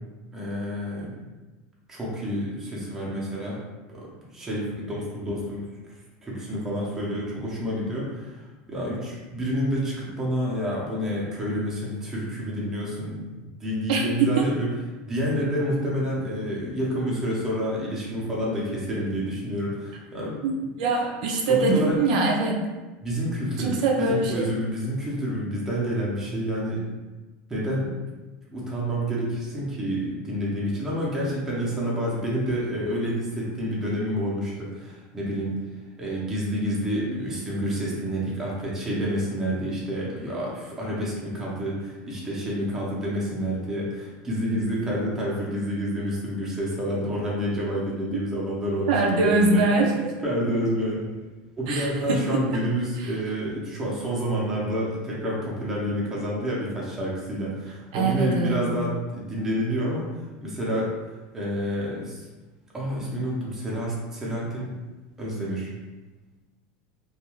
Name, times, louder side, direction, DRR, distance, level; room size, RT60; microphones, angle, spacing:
voice 1, 0.3-1.1 1.9-3.6 3.9-4.1 4.3-5.7 6.2-8.4 8.7-14.7 15.0-20.4 21.5-22.0 23.0-26.8 27.5-27.9 28.5-35.5 36.0-49.7 50.2-51.3 51.6-60.1 60.4-60.9 61.3-62.2 62.7-64.7 65.2-65.7, equal, 10° right, -6 dB, 0.6 m, -28 dB
voice 2, 13.9-14.5 20.4-22.6 23.6-24.5 48.9-50.1 51.7-52.5 53.0-53.1 57.9-58.6, right 3 dB, 70° right, 0 dB, 0.4 m, -23 dB
2.3 x 2.3 x 3.0 m, 1.2 s
supercardioid pair, 160°, 4 cm